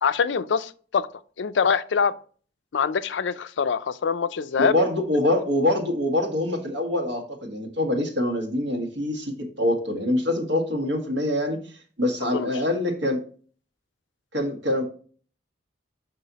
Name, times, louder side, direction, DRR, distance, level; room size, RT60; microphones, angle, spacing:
voice 1, 0.0-1.1 1.4-2.1 2.7-4.7 12.3-12.5, left 6 dB, 75° left, 0.4 m, -24 dB
voice 2, 4.6-11.7 12.0-13.2 14.3-14.9, left 1 dB, 75° right, 1.6 m, -25 dB
5.9 x 5.5 x 4.0 m
head